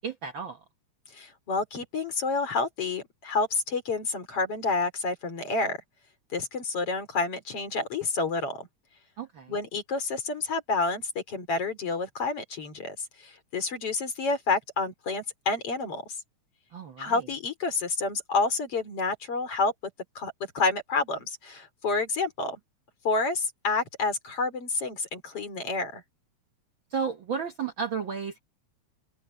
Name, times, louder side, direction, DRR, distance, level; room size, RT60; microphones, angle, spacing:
voice 1, 0.0-0.6 9.2-9.5 16.7-17.2 26.9-28.4, right 6 dB, 55° right, 1.6 m, -33 dB
voice 2, 1.1-5.8 6.3-8.7 9.5-16.0 17.0-19.7 20.2-22.6 23.0-26.0, left 3 dB, 50° left, 4.5 m, -29 dB
open air
omnidirectional pair, 3.3 m